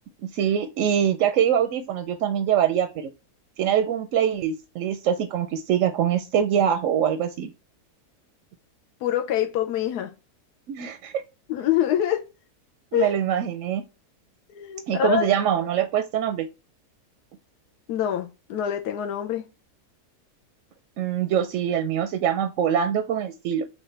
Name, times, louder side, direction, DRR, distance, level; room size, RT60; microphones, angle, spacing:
voice 1, 0.2-3.1 3.6-7.5 10.7-11.1 12.9-13.8 14.9-16.5 21.0-23.6, right 9 dB, 65° right, 0.8 m, -24 dB
voice 2, 9.0-10.1 11.5-12.3 12.9-13.1 14.5-15.2 17.9-19.4, left 10 dB, 80° left, 1.2 m, -25 dB
6.3 x 2.4 x 3.3 m
omnidirectional pair, 1.7 m